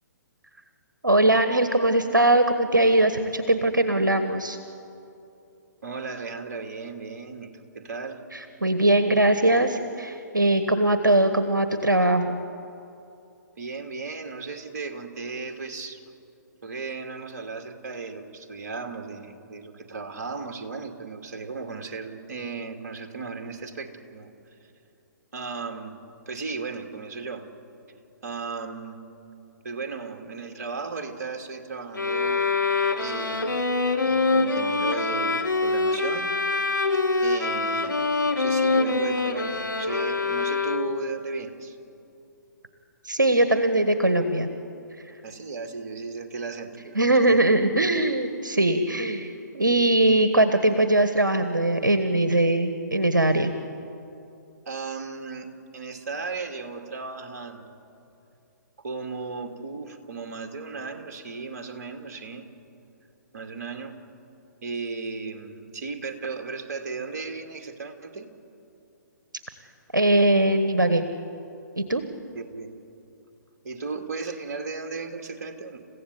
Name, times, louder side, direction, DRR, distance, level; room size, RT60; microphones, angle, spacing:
voice 1, 1.0-4.6 8.3-12.4 43.0-44.5 46.9-53.5 69.9-71.1 71.8-72.0, right 1 dB, 80° right, 9 dB, 1.4 m, -21 dB
voice 2, 5.8-8.2 13.6-16.0 16.6-24.3 25.3-26.0 26.3-27.5 28.2-29.0 29.6-32.4 33.0-36.3 37.2-38.0 38.4-41.8 45.2-47.0 47.3-47.4 54.7-57.8 58.8-62.5 63.3-64.0 64.6-68.3 72.3-72.7 73.6-75.8, right 4 dB, 50° right, 4 dB, 2.6 m, -35 dB
sound 1, 31.9-41.2, left 3 dB, 80° left, 2.0 m, -25 dB
28.5 x 16.0 x 8.1 m, 2.7 s
figure-of-eight pair, 130°, 10 cm